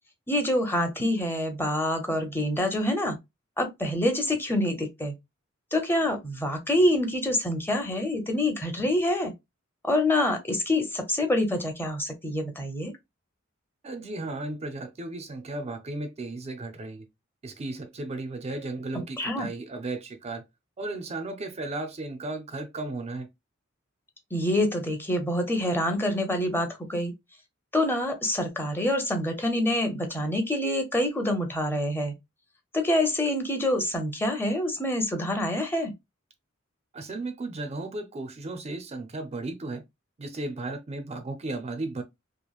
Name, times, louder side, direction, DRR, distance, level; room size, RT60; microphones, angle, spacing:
voice 1, 0.3-3.2 3.6-5.1 5.7-9.3 9.8-12.9 18.9-19.5 24.3-27.1 27.7-32.1 32.7-35.9, left 1 dB, 10° left, 0.6 m, -26 dB
voice 2, 13.8-17.1 17.4-20.4 20.8-23.3 36.9-39.8 40.2-42.0, right 2 dB, 30° right, 0.4 m, -35 dB
2.9 x 2.4 x 2.3 m
head